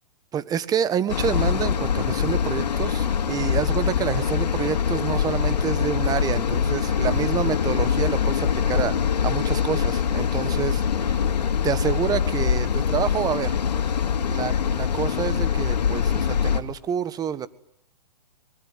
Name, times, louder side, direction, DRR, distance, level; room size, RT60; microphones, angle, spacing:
voice 1, 0.3-11.2 11.6-13.6 14.3-17.5, right 8 dB, 20° right, 15 dB, 1.4 m, -28 dB
sound 1, 1.1-16.6, left 7 dB, 75° left, 2.8 m, -23 dB
24.0 x 23.5 x 9.4 m, 0.74 s
hypercardioid pair, 130°, 21 cm